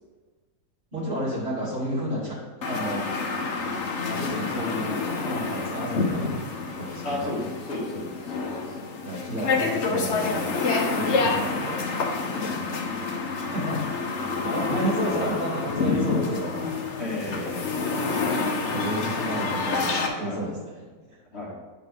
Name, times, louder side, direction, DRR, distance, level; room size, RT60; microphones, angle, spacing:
voice 1, 0.9-2.4 2.6-3.4 4.1-6.3 6.7-7.4 9.0-10.4 10.9-11.9 13.5-16.7 18.3-21.2, equal, 30° right, -7 dB, 3.0 m, -31 dB
sound 1, 2.6-20.1, left 4 dB, 55° left, 0.8 m, -28 dB
voice 2, 7.0-8.4 8.7-8.8 11.0-11.1 12.3-12.6 17.0-17.7 20.2-20.4 21.3-21.5, left 1 dB, 35° left, -5 dB, 2.1 m, -34 dB
8.6 x 5.9 x 3.6 m, 1.3 s
omnidirectional pair, 2.1 m